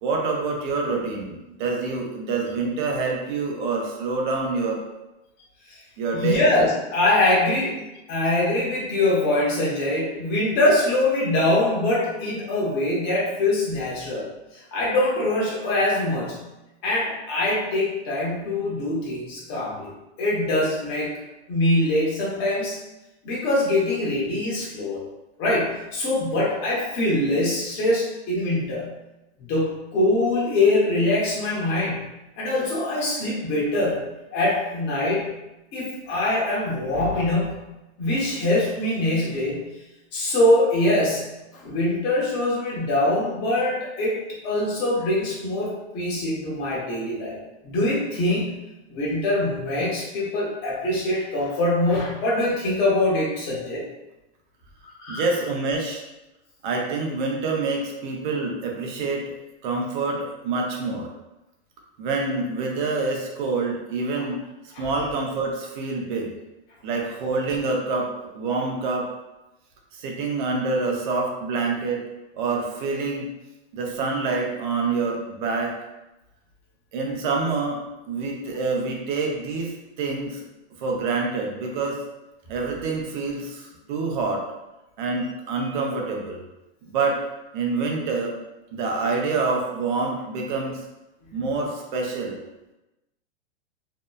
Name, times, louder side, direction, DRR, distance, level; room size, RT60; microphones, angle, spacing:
voice 1, 0.0-4.8 6.0-6.5 55.1-56.0 56.6-59.3 59.6-61.1 62.0-64.4 64.6-66.3 66.8-69.1 69.9-72.0 72.3-73.3 73.7-75.8 76.9-80.4 80.8-82.0 82.5-84.4 85.0-86.4 86.9-87.2 87.5-88.4 88.7-90.8 91.3-92.4, right 3 dB, 45° right, 0 dB, 0.6 m, -26 dB
voice 2, 6.1-7.8 8.1-14.2 14.5-16.4 16.8-19.9 20.2-21.2 21.5-22.8 23.2-25.0 25.4-28.9 29.4-32.1 32.4-35.3 35.7-37.7 38.0-39.7 40.1-41.3 41.5-44.2 44.4-47.4 47.6-48.6 48.9-53.8 55.0-55.2 64.7-64.9 91.3-91.4, left 1 dB, 30° left, -5 dB, 0.9 m, -23 dB
2.7 x 2.2 x 2.2 m, 0.99 s
hypercardioid pair, 150°, 35 cm